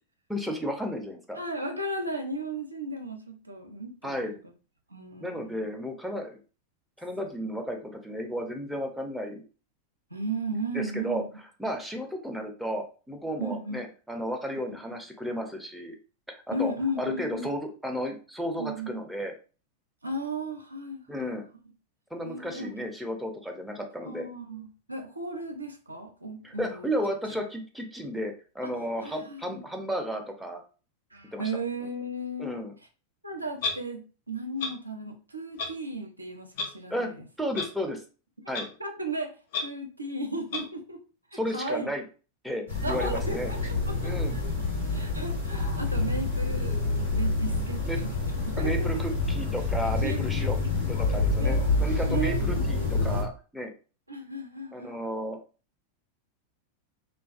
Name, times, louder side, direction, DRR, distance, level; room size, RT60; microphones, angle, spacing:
voice 1, 0.3-1.4 4.0-4.3 5.2-6.4 7.0-9.4 10.7-11.2 11.6-16.0 16.3-16.7 17.0-19.3 21.1-21.4 22.1-24.3 26.4-30.6 31.3-31.4 32.4-32.7 36.9-37.1 37.4-38.0 38.5-38.7 41.3-42.0 42.4-43.5 44.0-44.4 47.9-48.0 48.6-50.6 50.9-53.7 54.7-55.4, equal, ahead, 2 dB, 0.5 m, -33 dB
voice 2, 1.4-4.4 4.9-5.7 10.1-11.3 13.4-13.8 14.7-14.8 16.5-17.5 18.6-18.9 20.0-21.4 22.2-22.7 24.0-26.9 28.6-28.7 29.0-29.6 31.1-32.7 33.2-37.3 38.8-39.3 39.6-41.0 41.3-41.9 42.8-43.6 43.9-44.5 44.9-48.1 48.6-48.9 50.0-50.5 51.4-51.6 52.1-52.4 54.1-55.2, right 1 dB, 85° right, 3 dB, 0.4 m, -35 dB
Clock, 33.6-33.7 34.6-34.7 35.6-35.7 36.5-36.7 37.5-37.7 38.5-38.6 39.5-39.6 40.5-40.6, left 4 dB, 55° left, 0.5 m, -30 dB
sound 1, 42.7-53.2, left 3 dB, 85° left, 1.1 m, -27 dB
2.3 x 2.3 x 2.3 m, 0.36 s
figure-of-eight pair, 90°, 0 cm